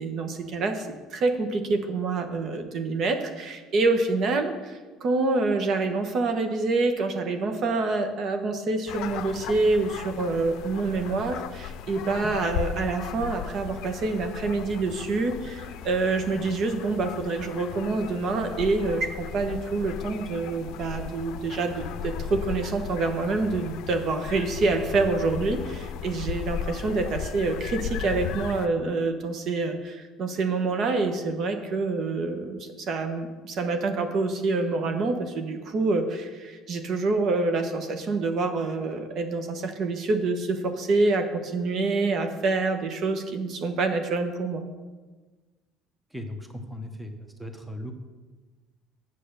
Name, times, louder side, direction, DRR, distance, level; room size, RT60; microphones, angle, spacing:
voice 1, 0.0-44.6, right 3 dB, 50° right, 6 dB, 1.2 m, -27 dB
sound 1, 8.9-28.7, left 8 dB, 70° left, 0.5 m, -36 dB
voice 2, 46.1-47.1 47.4-47.9, equal, 5° right, 5 dB, 1.1 m, -37 dB
8.1 x 7.2 x 6.7 m, 1.3 s
cardioid pair, 105°, 0 cm